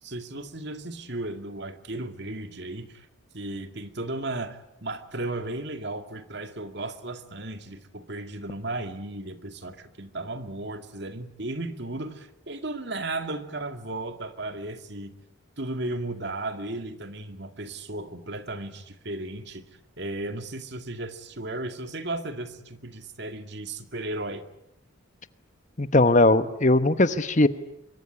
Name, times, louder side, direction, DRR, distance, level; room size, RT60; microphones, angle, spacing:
voice 1, 0.0-3.1 3.3-15.1 15.6-19.6 20.0-24.4, right 2 dB, 55° right, 8 dB, 2.3 m, -35 dB
voice 2, 25.8-27.5, left 2 dB, 35° left, 12 dB, 1.1 m, -19 dB
25.5 x 23.5 x 10.0 m, 0.81 s
head